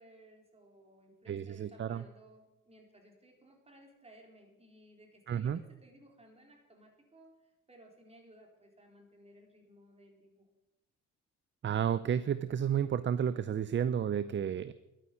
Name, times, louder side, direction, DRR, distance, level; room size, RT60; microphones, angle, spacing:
voice 1, 0.0-10.5, right 1 dB, 20° right, 1 dB, 4.4 m, -59 dB
voice 2, 1.3-2.0 5.3-5.6 11.6-14.7, right 8 dB, 40° right, 15 dB, 0.6 m, -31 dB
12.0 x 9.4 x 9.7 m, 0.97 s
cardioid pair, 90°, 30 cm